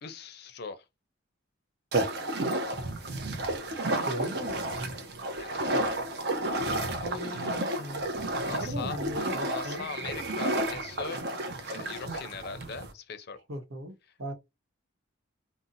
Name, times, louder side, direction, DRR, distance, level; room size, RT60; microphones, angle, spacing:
voice 1, 0.0-0.8 5.4-5.8 7.3-7.4 8.4-9.0 9.4-11.2 11.6-13.4, left 5 dB, 55° left, 0.5 m, -40 dB
sound 1, 1.9-12.9, right 1 dB, 55° right, 0.6 m, -31 dB
voice 2, 4.0-4.6 7.0-8.0 8.4-9.9 13.5-14.3, equal, 80° right, 0.9 m, -38 dB
2.6 x 2.0 x 3.8 m
head